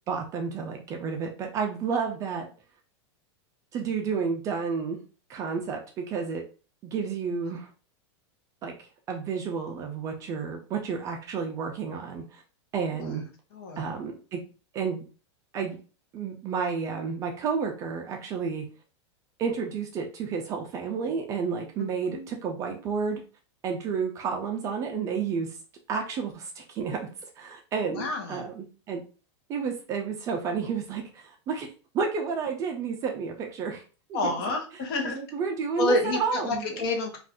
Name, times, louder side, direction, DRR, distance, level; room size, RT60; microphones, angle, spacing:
voice 1, 0.1-2.5 3.7-5.0 5.3-6.4 6.8-7.7 8.6-12.4 12.7-13.2 13.8-14.4 14.7-15.0 15.5-15.8 16.1-18.6 19.4-23.2 23.6-25.6 25.9-29.0 29.5-31.7 31.9-33.8 34.1-34.3 35.0-36.7, right 5 dB, 20° right, 3 dB, 0.3 m, -31 dB
voice 2, 13.5-13.8 21.8-22.3 27.8-28.5 34.1-35.2 35.8-37.2, left 2 dB, 55° left, 3 dB, 0.9 m, -29 dB
2.5 x 2.4 x 3.5 m, 0.36 s
supercardioid pair, 160°, 15 cm